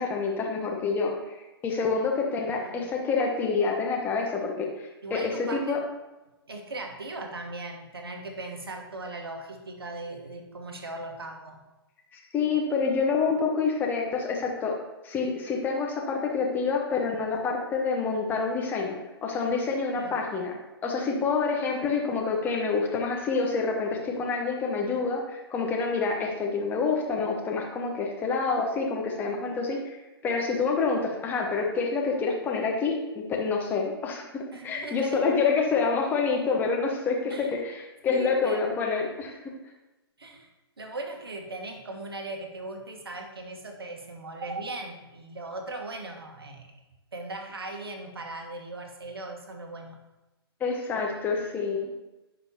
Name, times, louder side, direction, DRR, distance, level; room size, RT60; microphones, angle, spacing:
voice 1, 0.0-1.3 1.6-5.8 12.1-14.7 15.0-20.5 20.8-30.0 30.2-39.3 50.6-51.9, left 4 dB, 15° left, 0 dB, 1.1 m, -27 dB
voice 2, 5.0-5.8 6.5-11.6 19.9-20.2 34.5-35.2 37.3-37.5 38.1-38.6 40.2-40.5 40.8-46.7 47.1-50.0, right 2 dB, 65° right, 3 dB, 1.3 m, -38 dB
9.8 x 5.1 x 2.9 m, 1.0 s
figure-of-eight pair, 120°, 13 cm